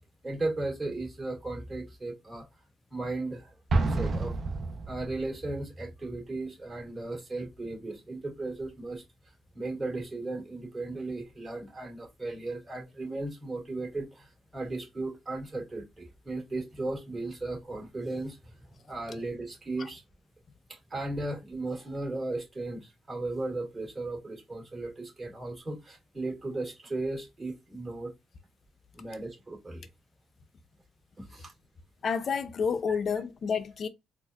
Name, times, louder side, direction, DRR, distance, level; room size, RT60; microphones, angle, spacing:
voice 1, 0.2-2.5 2.9-3.5 3.9-4.3 4.9-18.6 18.9-20.0 20.7-28.1 28.9-29.9 31.2-31.5 32.9-33.0, right 2 dB, 30° right, 2.2 m, -36 dB
Explosion, 3.7-5.4, right 3 dB, 50° right, 0.8 m, -29 dB
voice 2, 32.0-33.9, left 6 dB, 50° left, 0.6 m, -29 dB
4.2 x 2.5 x 2.4 m
cardioid pair, 90°, 0 cm